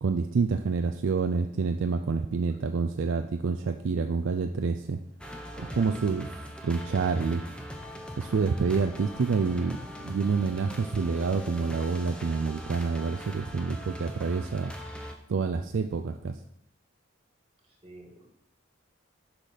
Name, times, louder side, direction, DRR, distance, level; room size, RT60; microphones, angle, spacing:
voice 1, 0.0-5.0 5.7-6.3 6.6-7.4 8.2-9.8 10.0-14.7 15.3-16.4, right 4 dB, 70° right, 7 dB, 0.4 m, -27 dB
sound 1, 5.2-15.1, equal, 5° left, 0.7 m, -41 dB
voice 2, 5.5-6.0 17.6-18.3, right 1 dB, 25° right, 0 dB, 1.6 m, -49 dB
6.3 x 5.8 x 5.1 m, 0.72 s
head